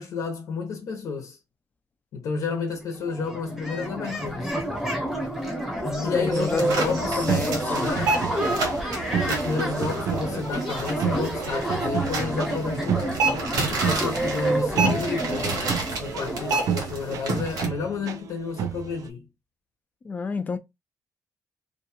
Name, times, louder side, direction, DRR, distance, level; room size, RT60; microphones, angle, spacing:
voice 1, 0.0-1.4 2.1-4.5 6.0-8.2 9.3-15.8 16.0-19.3, left 4 dB, 70° left, 0.6 m, -31 dB
sound 1, 2.8-2.9 3.0-17.7, right 1 dB, 5° right, 0.7 m, -29 dB
voice 2, 5.8-7.9 20.0-20.6, left 5 dB, 25° left, 0.3 m, -30 dB
sound 2, 6.3-17.7, right 2 dB, 85° right, 1.0 m, -30 dB
sound 3, 7.0-19.1, right 10 dB, 65° right, 0.4 m, -32 dB
2.5 x 2.2 x 2.8 m
cardioid pair, 160°, 6 cm